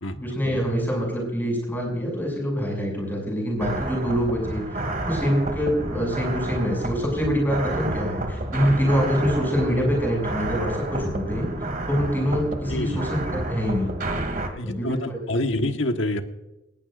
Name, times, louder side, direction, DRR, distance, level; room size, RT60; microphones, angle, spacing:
voice 1, 0.1-11.5 11.9-13.9 14.6-15.2 15.5-15.7, equal, 10° left, 0 dB, 6.6 m, -25 dB
sound 1, 3.6-14.5, right 1 dB, 45° right, 2.0 m, -30 dB
voice 2, 12.7-13.0 14.6-16.2, left 1 dB, 75° left, 6 dB, 1.4 m, -27 dB
19.0 x 18.0 x 2.6 m, 0.96 s
head